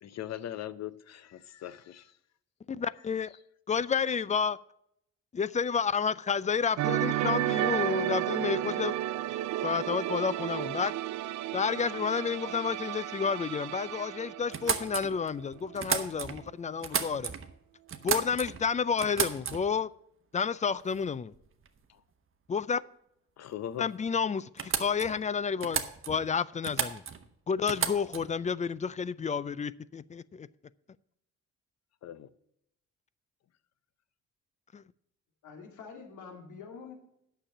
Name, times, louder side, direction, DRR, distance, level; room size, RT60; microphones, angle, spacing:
voice 1, 0.0-2.1 23.4-23.9 32.0-32.3, left 11 dB, 60° left, 0.7 m, -40 dB
voice 2, 2.7-3.3 3.7-4.6 5.3-9.0 9.3-9.4 9.6-10.9 11.5-17.3 18.0-19.9 20.3-21.3 22.5-22.8 23.8-27.0 27.5-30.5 34.7-34.8, left 6 dB, 25° left, 0.4 m, -30 dB
sound 1, 6.8-15.4 15.7-15.9, right 14 dB, 70° right, 0.5 m, -32 dB
sound 2, 14.5-16.5 16.8-17.5 17.9-18.7 19.0-19.8 20.8-21.0 21.4-21.8 23.7-23.8 24.1-24.2 24.6-25.2 25.6-26.3 26.6-27.3 27.7-28.4, right 7 dB, 45° right, 1.1 m, -33 dB
voice 3, 35.4-36.9, left 5 dB, 80° left, 2.3 m, -46 dB
8.9 x 6.8 x 7.2 m
cardioid pair, 90°, 30 cm